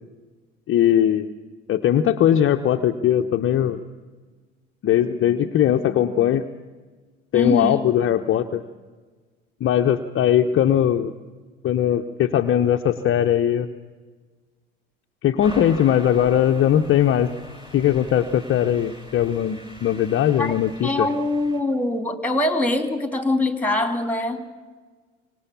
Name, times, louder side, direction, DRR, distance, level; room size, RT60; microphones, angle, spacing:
voice 1, 0.7-1.3 1.7-3.8 4.8-6.5 7.3-8.6 9.6-11.1 11.6-13.7 15.2-17.3 17.7-21.1, left 10 dB, 35° left, 5 dB, 1.0 m, -20 dB
voice 2, 7.3-7.8 20.4-20.6 20.8-24.5, left 2 dB, 5° left, 8 dB, 2.9 m, -23 dB
sound 1, 15.4-21.6, equal, 15° right, 5.5 m, -42 dB
25.0 x 19.0 x 7.2 m, 1.4 s
figure-of-eight pair, 70°, 36 cm